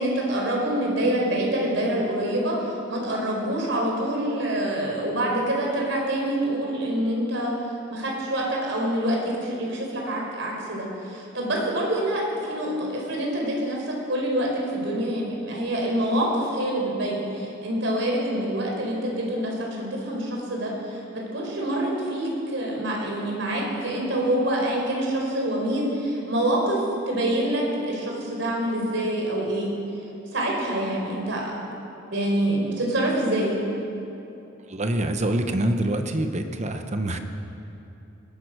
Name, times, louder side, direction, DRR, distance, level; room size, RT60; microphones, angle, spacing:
voice 1, 0.0-7.5 7.9-26.8 27.1-29.7 30.3-31.5 32.0-33.6, right 1 dB, 70° right, -2 dB, 4.4 m, -26 dB
voice 2, 34.7-37.2, right 1 dB, 35° right, 7 dB, 0.9 m, -25 dB
20.0 x 11.0 x 6.4 m, 2.8 s
head